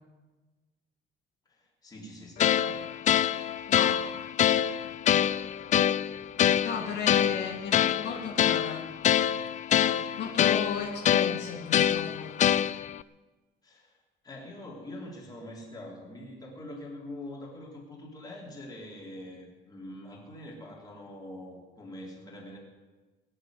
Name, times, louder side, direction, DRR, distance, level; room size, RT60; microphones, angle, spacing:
voice 1, 1.5-2.8 7.2-7.3 13.6-14.0 14.2-22.6, left 1 dB, 20° left, -2 dB, 4.0 m, -44 dB
sound 1, 2.4-13.0, left 10 dB, 40° left, 0.4 m, -25 dB
voice 2, 3.7-4.0 6.6-8.8 10.2-12.3, left 6 dB, 60° left, 1 dB, 2.3 m, -35 dB
20.0 x 7.4 x 9.5 m, 1.3 s
cardioid pair, 155°, 20 cm